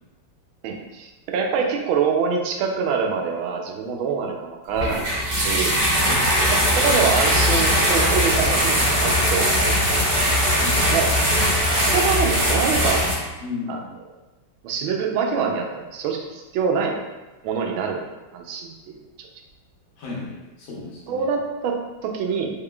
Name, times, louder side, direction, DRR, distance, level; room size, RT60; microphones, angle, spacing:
voice 1, 0.6-5.0 5.3-5.7 6.4-9.7 10.0-10.3 10.9-11.1 11.9-13.1 13.7-13.8 14.6-17.0 17.4-18.0 18.3-19.3 21.1-21.8 22.0-22.5, right 6 dB, 85° right, 2 dB, 1.4 m, -25 dB
sound 1, 4.8-13.1, equal, 45° right, 1.1 m, -20 dB
voice 2, 10.5-10.9 13.4-13.8 20.0-21.3, left 4 dB, 75° left, -5 dB, 1.7 m, -34 dB
3.8 x 3.6 x 2.2 m, 1.1 s
omnidirectional pair, 2.2 m